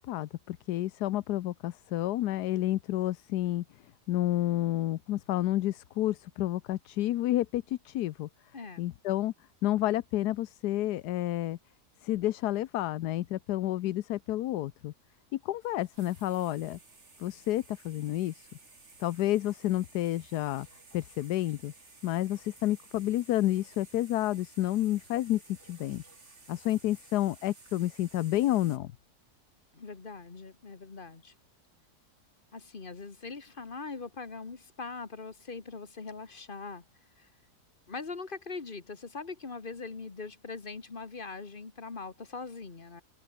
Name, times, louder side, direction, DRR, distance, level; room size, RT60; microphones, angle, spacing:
voice 1, 0.1-3.6 4.1-8.3 8.8-9.3 9.6-11.6 12.0-14.9 15.3-16.8 17.2-18.5 19.0-20.7 20.9-21.7 22.0-26.0 26.5-28.9, left 14 dB, 80° left, 1.2 m, -30 dB
voice 2, 8.5-8.9 29.7-31.3 32.5-36.8 37.2-37.3 37.9-43.0, left 4 dB, 35° left, 1.7 m, -41 dB
sound 1, 15.6-28.8, right 3 dB, 45° right, 3.6 m, -56 dB
omnidirectional pair, 1.7 m